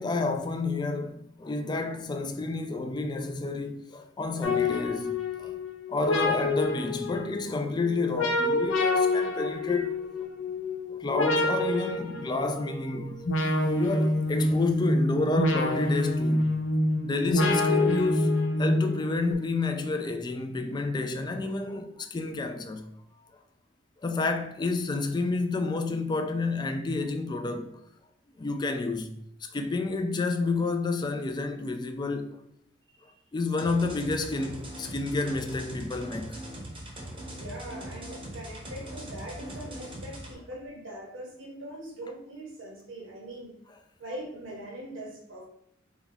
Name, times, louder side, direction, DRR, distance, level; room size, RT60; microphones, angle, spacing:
voice 1, 0.0-5.5 5.9-9.9 11.0-13.2 13.7-16.5 17.0-22.8 24.0-27.8 28.4-29.1 29.5-32.3 33.3-36.4, left 3 dB, 20° left, 0.3 m, -30 dB
sound 1, 4.4-19.3, left 2 dB, 80° left, 0.8 m, -27 dB
sound 2, 33.6-40.3, right 1 dB, 30° right, 0.8 m, -41 dB
voice 2, 37.2-43.5 44.0-45.4, right 1 dB, 70° right, 1.1 m, -42 dB
4.1 x 2.3 x 3.8 m
head